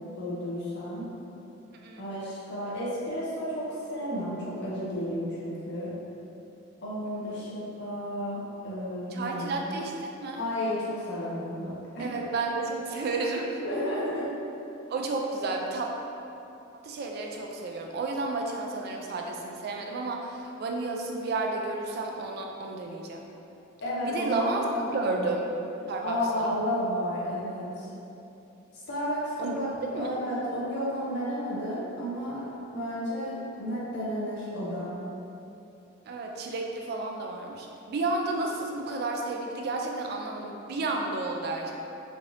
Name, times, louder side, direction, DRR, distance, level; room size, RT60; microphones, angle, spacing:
voice 1, 0.2-1.1 2.0-5.9 6.8-9.7 10.4-12.1 13.5-14.3 23.8-25.3 26.0-27.9 28.9-32.5 32.7-34.9, equal, 55° left, -8 dB, 0.6 m, -32 dB
voice 2, 7.1-7.5 9.1-9.9 10.2-10.4 12.0-13.6 14.9-15.9 16.7-23.2 24.0-24.6 24.9-25.5 25.9-26.5 29.4-30.1 36.1-41.7, right 3 dB, 50° right, 1 dB, 0.3 m, -32 dB
3.2 x 2.6 x 2.6 m, 2.9 s
head